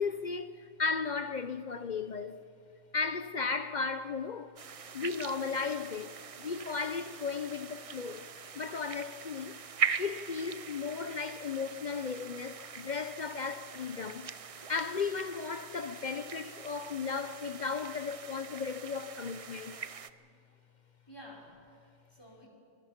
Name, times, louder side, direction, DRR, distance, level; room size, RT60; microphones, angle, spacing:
voice 1, 0.0-2.4 2.9-4.5 4.9-8.2 8.5-9.5 10.0-14.3 14.7-19.8, left 5 dB, 50° left, 0.5 m, -35 dB
sound 1, 4.6-20.1, right 6 dB, 45° right, 0.5 m, -41 dB
voice 2, 19.6-20.4 21.1-22.5, equal, 20° left, 4.9 m, -54 dB
24.5 x 20.5 x 5.8 m
omnidirectional pair, 1.3 m